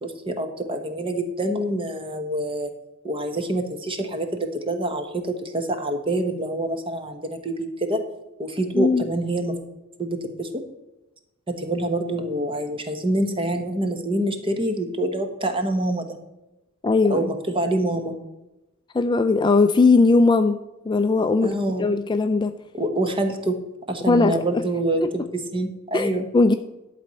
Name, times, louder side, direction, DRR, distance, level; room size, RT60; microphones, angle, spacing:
voice 1, 0.0-2.7 3.0-8.0 8.4-9.6 10.0-10.6 11.5-16.2 17.1-18.2 21.4-21.9 22.7-23.6 23.9-26.3, right 1 dB, 25° right, 6 dB, 1.1 m, -26 dB
voice 2, 8.7-9.1 16.8-17.3 18.9-20.6 20.9-22.5 24.1-24.4 25.0-25.1 25.9-26.5, left 3 dB, 20° left, 9 dB, 0.3 m, -19 dB
11.5 x 4.3 x 7.6 m, 0.99 s
head